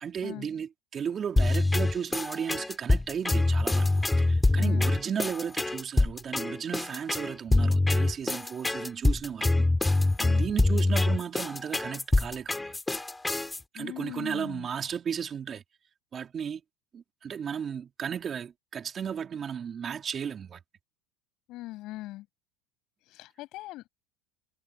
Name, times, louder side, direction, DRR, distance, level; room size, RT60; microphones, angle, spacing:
voice 1, 0.0-3.9 4.2-9.7 10.3-12.8 13.7-15.6 16.1-16.6 16.9-20.6, right 7 dB, 35° right, 3.6 m, -34 dB
sound 1, 1.4-13.6, left 2 dB, 10° left, 4.5 m, -25 dB
voice 2, 4.6-4.9 10.2-10.4 13.8-14.7 21.5-22.3 23.1-23.8, left 17 dB, 60° left, 7.0 m, -40 dB
supercardioid pair, 110°, 0 cm